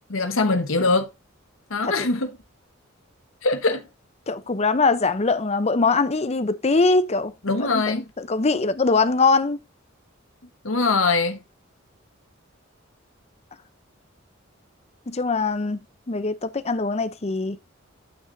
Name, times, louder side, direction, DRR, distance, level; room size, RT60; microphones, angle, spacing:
voice 1, 0.1-1.1 1.7-2.4 3.4-3.8 7.4-8.1 10.6-11.4, left 3 dB, 80° left, 1.3 m, -22 dB
voice 2, 4.3-7.3 7.6-9.6 15.1-15.8 16.1-17.6, left 3 dB, 35° left, 0.7 m, -22 dB
9.1 x 8.1 x 2.7 m
head